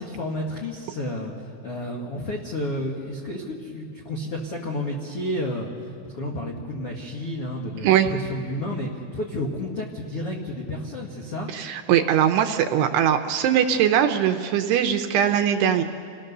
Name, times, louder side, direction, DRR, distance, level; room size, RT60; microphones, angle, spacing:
voice 1, 0.0-1.3 1.6-5.7 6.0-11.5, left 1 dB, 75° left, -1 dB, 1.3 m, -31 dB
voice 2, 11.5-15.8, right 9 dB, 80° right, 7 dB, 2.5 m, -21 dB
28.5 x 17.5 x 6.7 m, 2.5 s
omnidirectional pair, 5.3 m